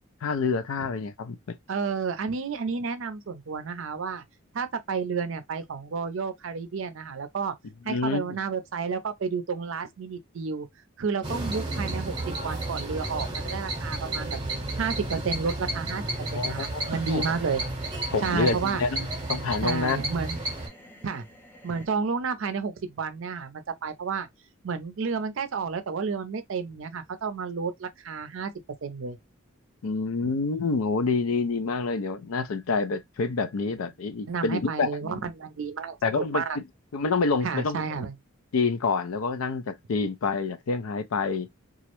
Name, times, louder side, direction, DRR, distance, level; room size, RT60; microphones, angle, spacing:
voice 1, 0.2-1.6 7.9-8.4 16.3-17.2 18.1-20.0 29.8-35.2 36.0-36.6 36.9-38.1 38.5-41.5, left 4 dB, 80° left, 0.4 m, -28 dB
voice 2, 1.7-4.2 4.5-7.5 7.8-10.7 11.0-14.4 14.8-16.0 16.3-17.6 18.2-18.8 19.6-20.4 21.0-21.2 21.6-24.3 24.6-28.5 28.8-29.2 30.2-30.3 34.3-36.6 37.4-38.1, right 5 dB, 65° right, 0.5 m, -31 dB
sound 1, 11.2-20.7, right 2 dB, 20° right, 0.7 m, -32 dB
sound 2, 16.1-21.9, left 1 dB, 10° left, 0.5 m, -51 dB
2.4 x 2.0 x 2.8 m
head